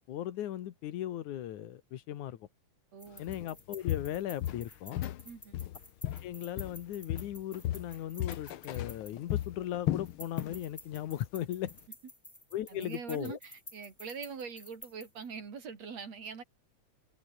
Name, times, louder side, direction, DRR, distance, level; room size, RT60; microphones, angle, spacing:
voice 1, 0.1-2.5 3.2-5.0 6.0-11.7 12.5-13.4, left 12 dB, 85° left, 2.8 m, -38 dB
voice 2, 2.9-3.2 5.2-5.6 12.7-16.4, right 5 dB, 60° right, 4.6 m, -43 dB
sound 1, 3.0-9.6 10.0-15.3, left 1 dB, 5° left, 1.7 m, -52 dB
Walk footsteps, 3.3-3.5 3.9-5.2 5.5-6.8 7.1-10.6 10.9-11.2 11.6-11.7, left 13 dB, 70° left, 1.3 m, -35 dB
omnidirectional pair, 3.3 m